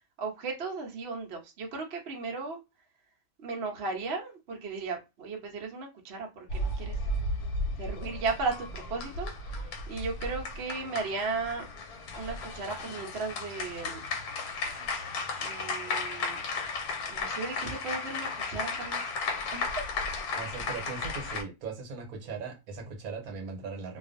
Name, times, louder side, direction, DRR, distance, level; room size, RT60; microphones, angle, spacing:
voice 1, 0.2-2.6 3.4-7.0 7.8-11.6 12.2-14.1 15.4-16.4 17.1-19.1 19.5-19.8, right 4 dB, 55° right, 0.8 m, -36 dB
sound 1, 6.5-21.4, left 3 dB, 90° left, 1.2 m, -34 dB
voice 2, 20.3-24.0, right 4 dB, 75° right, 1.2 m, -39 dB
2.5 x 2.3 x 2.5 m
omnidirectional pair, 1.6 m